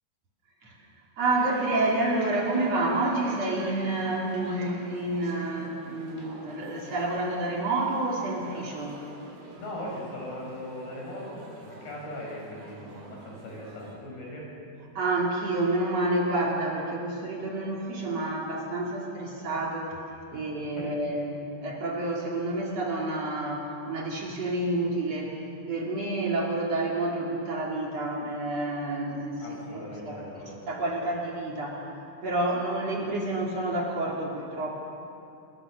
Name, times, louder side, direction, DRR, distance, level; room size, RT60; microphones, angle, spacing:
voice 1, 1.2-9.0 14.9-20.0 20.3-25.4 25.7-30.2 30.7-31.9 32.2-34.7, right 2 dB, 45° right, -2 dB, 3.4 m, -29 dB
sound 1, 1.2-14.0, right 2 dB, 75° right, 5.7 m, -46 dB
voice 2, 9.5-14.5 20.3-20.4 20.8-20.9 29.4-30.7, left 1 dB, 80° left, -2 dB, 8.1 m, -39 dB
27.5 x 21.5 x 6.4 m, 2.6 s
omnidirectional pair, 4.5 m